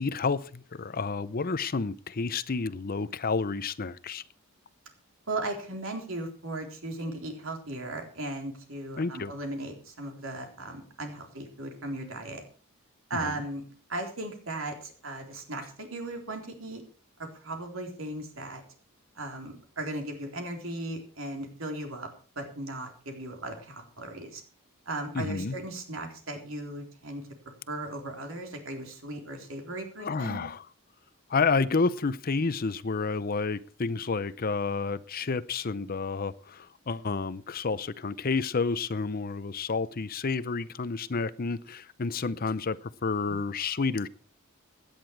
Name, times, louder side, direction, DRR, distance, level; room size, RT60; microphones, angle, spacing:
voice 1, 0.0-4.2 9.0-9.3 13.2-13.3 25.1-25.6 30.0-30.6 31.3-44.1, left 4 dB, 45° left, 16 dB, 0.6 m, -30 dB
voice 2, 5.3-12.5 13.1-13.6 13.9-16.8 17.2-18.6 19.2-22.1 22.4-24.4 24.9-27.2 27.7-30.5, right 2 dB, 65° right, 3 dB, 3.8 m, -37 dB
17.0 x 10.5 x 4.6 m, 0.39 s
head